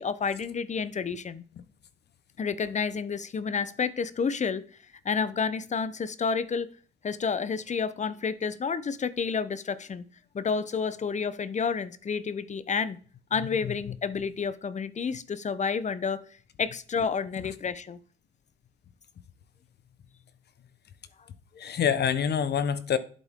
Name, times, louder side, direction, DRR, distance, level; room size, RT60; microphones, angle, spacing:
voice 1, 0.0-1.4 2.4-4.6 5.0-6.7 7.0-10.0 10.3-13.0 13.3-16.2 16.6-18.0, left 5 dB, 35° left, 0.9 m, -30 dB
voice 2, 13.6-13.9 21.6-23.0, left 8 dB, 55° left, 1.1 m, -27 dB
10.5 x 8.4 x 3.7 m
cardioid pair, 90°, 20 cm